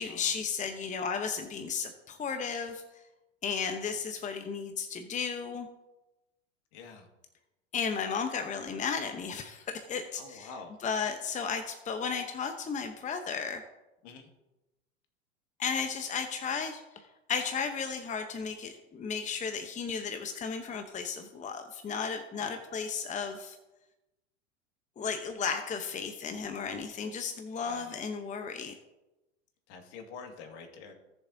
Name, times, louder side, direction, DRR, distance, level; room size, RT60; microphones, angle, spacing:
voice 1, 0.0-3.0 3.4-5.7 7.7-10.5 10.8-13.6 15.6-23.6 25.0-28.8, left 6 dB, 20° left, 6 dB, 0.9 m, -34 dB
voice 2, 3.6-4.0 6.7-7.1 10.2-10.8 14.0-14.3 22.4-22.6 27.6-28.0 29.7-30.9, left 5 dB, 60° left, 4 dB, 2.2 m, -47 dB
17.5 x 7.1 x 2.8 m, 1.0 s
hypercardioid pair, 90°, 38 cm